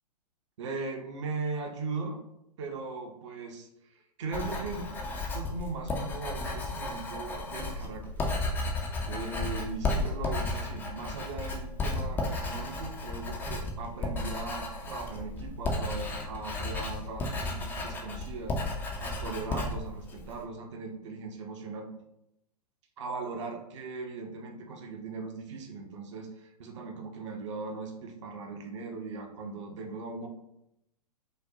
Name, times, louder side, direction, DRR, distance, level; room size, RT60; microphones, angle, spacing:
voice 1, 0.6-2.2 2.6-4.9 5.3-8.3 9.1-21.9 23.0-30.3, right 3 dB, 45° right, 3 dB, 0.7 m, -39 dB
Writing, 4.3-20.4, left 2 dB, 10° left, 0.4 m, -34 dB
5.0 x 2.1 x 2.7 m, 0.82 s
figure-of-eight pair, 110°, 21 cm